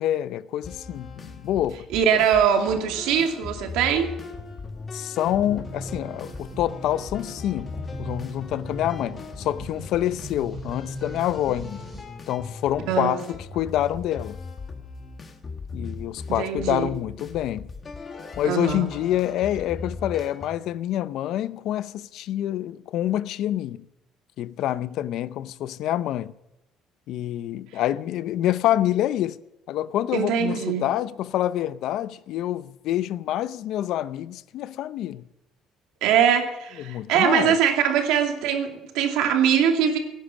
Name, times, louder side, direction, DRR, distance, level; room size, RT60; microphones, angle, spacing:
voice 1, 0.0-1.9 4.9-7.7 8.0-11.8 12.3-14.4 15.7-17.7 18.4-23.8 24.4-26.3 27.1-29.4 29.7-35.2 36.8-37.6, left 12 dB, 60° left, 0.6 m, -27 dB
sound 1, 0.6-20.5, left 4 dB, 25° left, 1.4 m, -39 dB
voice 2, 1.9-4.1 12.9-13.2 16.3-16.9 18.4-18.9 27.7-27.8 30.1-30.8 36.0-40.0, right 8 dB, 85° right, 2.5 m, -22 dB
sound 2, 5.2-12.0, right 1 dB, 5° right, 4.0 m, -40 dB
17.5 x 10.0 x 7.1 m
cardioid pair, 170°, 0 cm